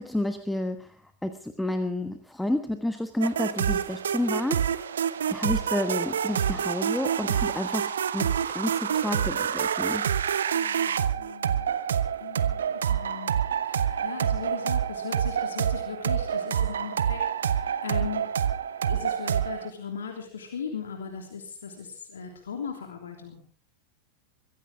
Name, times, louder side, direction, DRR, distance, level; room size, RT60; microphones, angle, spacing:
voice 1, 0.0-4.7 5.3-10.1, left 1 dB, 5° left, 8 dB, 1.3 m, -30 dB
sound 1, 3.2-19.7, right 8 dB, 65° right, 1.0 m, -27 dB
voice 2, 10.5-11.7 12.2-13.3 13.6-18.3 18.8-23.4, left 6 dB, 65° left, 3 dB, 3.2 m, -38 dB
23.5 x 16.0 x 3.7 m, 0.39 s
figure-of-eight pair, 90°, 0 cm